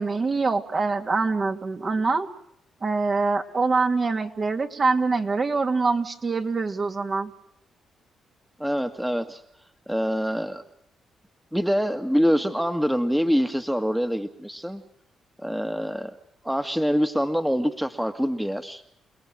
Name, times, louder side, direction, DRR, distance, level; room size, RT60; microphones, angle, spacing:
voice 1, 0.0-2.3 2.8-7.3, right 4 dB, 40° right, 5 dB, 2.6 m, -24 dB
voice 2, 8.6-9.4 9.9-10.6 11.5-14.8 15.4-16.2 16.4-18.8, equal, 5° right, 8 dB, 1.9 m, -25 dB
29.0 x 19.0 x 7.7 m, 0.74 s
cardioid pair, 70°, 0 cm